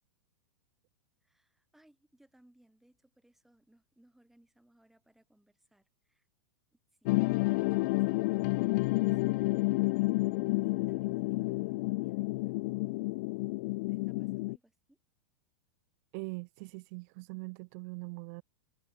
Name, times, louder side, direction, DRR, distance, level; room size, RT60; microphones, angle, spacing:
voice 1, 1.2-6.3 6.7-15.0, right 1 dB, ahead, 7.8 m, -66 dB
sound 1, 7.1-14.6, left 24 dB, 40° left, 0.4 m, -30 dB
voice 2, 16.1-18.4, right 30 dB, 35° right, 0.5 m, -42 dB
supercardioid pair, 165°, 15 cm